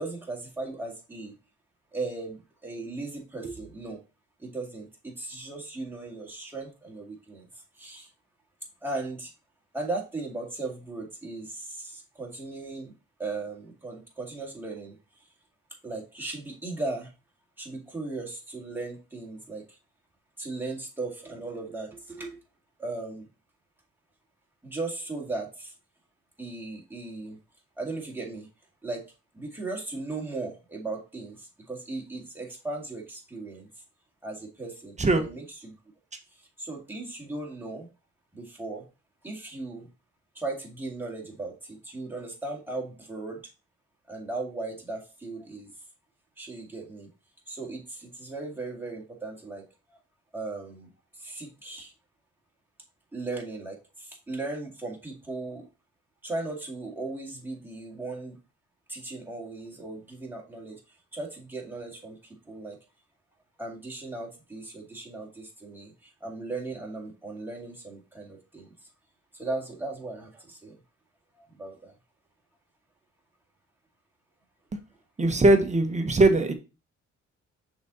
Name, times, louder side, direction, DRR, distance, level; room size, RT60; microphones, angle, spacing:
voice 1, 0.0-1.3 1.9-4.0 4.4-8.1 8.8-9.3 9.7-12.9 13.2-15.2 15.8-17.1 17.6-19.8 20.4-22.4 22.8-23.3 24.6-25.7 26.4-27.4 27.8-28.5 28.8-29.0 29.3-33.7 34.2-35.7 36.3-37.9 38.3-38.8 39.2-39.9 40.3-43.4 44.1-45.7 46.4-47.1 47.5-49.6 50.3-50.9 51.1-51.9 53.1-55.7 56.2-58.4 58.9-60.8 61.1-62.8 63.6-68.9 69.3-70.8 71.3-71.9, right 2 dB, 5° right, 2.2 m, -37 dB
voice 2, 75.2-76.5, right 2 dB, 25° right, 1.1 m, -20 dB
5.9 x 4.1 x 4.0 m
cardioid pair, 100°, 29 cm